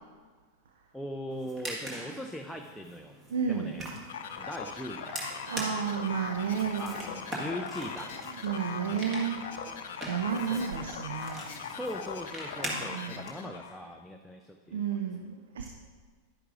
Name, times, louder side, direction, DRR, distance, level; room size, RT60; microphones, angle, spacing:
voice 1, 0.9-3.2 3.5-3.9 4.4-5.1 6.8-8.1 8.9-9.1 10.5-10.7 11.7-15.0, equal, 5° left, 2 dB, 0.4 m, -40 dB
sound 1, 1.3-13.3, right 1 dB, 25° right, 1.8 m, -42 dB
voice 2, 3.3-3.7 5.5-6.9 8.4-9.4 10.1-11.5 12.9-13.2 14.7-15.7, right 7 dB, 65° right, 3 dB, 0.6 m, -31 dB
sound 2, 4.1-13.8, left 6 dB, 60° left, 0.6 m, -40 dB
10.5 x 10.0 x 2.5 m, 1.5 s
figure-of-eight pair, 90°, 0 cm